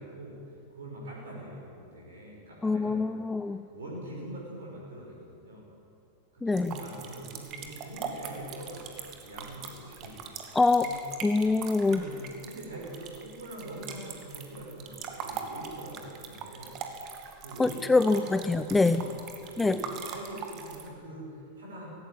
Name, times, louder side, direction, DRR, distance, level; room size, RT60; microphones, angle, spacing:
voice 1, 0.0-3.1 3.7-5.7 6.3-10.1 10.4-11.0 11.8-16.8 17.4-18.3 18.7-21.9, right 1 dB, 65° right, -3 dB, 5.8 m, -43 dB
voice 2, 2.6-3.6 6.4-6.8 10.5-10.9 11.2-12.0 17.6-19.0 19.6-19.8, left 3 dB, 10° left, 12 dB, 0.6 m, -24 dB
sound 1, 6.5-20.9, right 6 dB, 35° right, 2.4 m, -42 dB
17.5 x 16.5 x 9.8 m, 2.6 s
figure-of-eight pair, 90°, 0 cm